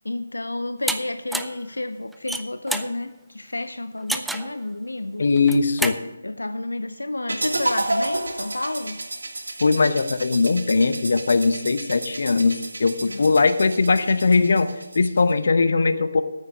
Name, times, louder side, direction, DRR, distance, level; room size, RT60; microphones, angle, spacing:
voice 1, 0.0-5.3 6.2-9.0 13.1-13.4, left 2 dB, 85° left, 11 dB, 0.6 m, -30 dB
sound 1, 0.9-1.0 1.3-1.6 2.1-2.9 4.1-4.5 5.4-6.0, right 1 dB, ahead, 0.4 m, -27 dB
voice 2, 5.2-6.0 9.6-16.2, left 4 dB, 60° left, 11 dB, 0.8 m, -20 dB
sound 2, 7.3-15.3, right 2 dB, 75° right, 1.6 m, -31 dB
9.3 x 8.5 x 6.2 m, 1.0 s
figure-of-eight pair, 155°, 0 cm